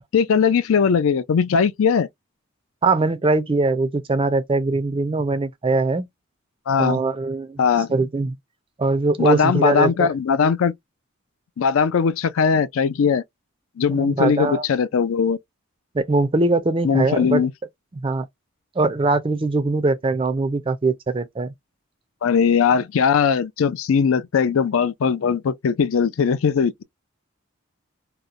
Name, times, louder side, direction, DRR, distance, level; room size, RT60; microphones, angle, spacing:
voice 1, 0.1-2.1 6.7-7.0 7.6-7.9 9.2-10.7 11.6-13.2 13.8-15.4 16.8-17.5 22.2-26.8, left 6 dB, 70° left, 0.4 m, -19 dB
voice 2, 2.8-6.1 6.8-7.6 7.9-8.4 8.8-10.1 13.9-14.7 15.9-17.5 17.9-18.3 18.8-21.5, right 3 dB, 25° right, 0.4 m, -21 dB
2.8 x 2.1 x 2.4 m
head